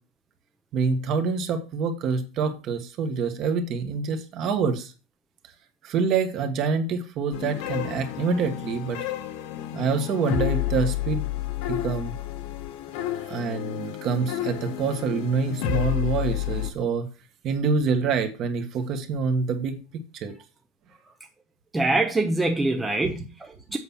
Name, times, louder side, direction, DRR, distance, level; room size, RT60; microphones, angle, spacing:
voice 1, 0.7-4.9 5.8-9.0 9.7-11.3 11.7-12.1 13.3-17.1 17.4-20.3 23.0-23.2, right 5 dB, 35° right, 1.4 m, -26 dB
sound 1, 7.3-16.7, left 12 dB, 60° left, 1.3 m, -30 dB
voice 2, 21.7-23.8, right 2 dB, 5° right, 0.6 m, -24 dB
8.0 x 6.0 x 5.5 m
cardioid pair, 175°, 0 cm